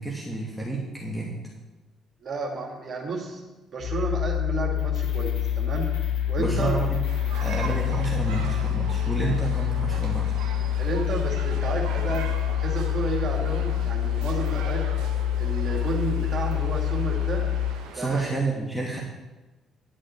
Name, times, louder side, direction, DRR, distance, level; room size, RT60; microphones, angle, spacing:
voice 1, 0.0-1.3 6.4-7.0 7.3-10.4 17.9-19.0, right 2 dB, 5° left, -3 dB, 2.8 m, -29 dB
voice 2, 2.2-3.4 3.7-5.9 6.3-6.8 10.8-12.3 12.6-14.8 15.4-17.4 18.0-18.3, right 3 dB, 45° right, -1 dB, 2.6 m, -31 dB
sound 1, 3.8-17.7, left 10 dB, 70° left, 1.6 m, -26 dB
sound 2, 7.1-18.2, right 6 dB, 65° right, 1.3 m, -41 dB
11.5 x 6.4 x 8.0 m, 1.1 s
figure-of-eight pair, 45°, 0 cm